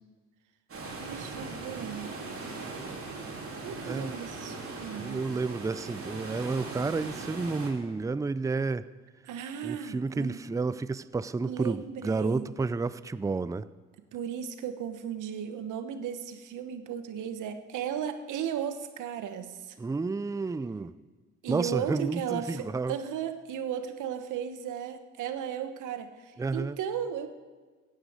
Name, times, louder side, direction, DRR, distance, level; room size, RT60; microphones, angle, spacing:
sound 1, 0.7-7.7, right 3 dB, 50° right, 3.7 m, -39 dB
voice 1, 1.0-2.2 3.6-5.4 9.3-10.4 11.4-12.5 14.1-19.8 21.4-27.3, right 8 dB, 85° right, 1.3 m, -35 dB
voice 2, 3.8-4.2 4.9-8.9 9.6-13.7 19.8-20.9 21.5-23.0 26.4-26.8, right 4 dB, 10° right, 0.4 m, -31 dB
15.5 x 10.0 x 8.0 m
cardioid pair, 90°, 30 cm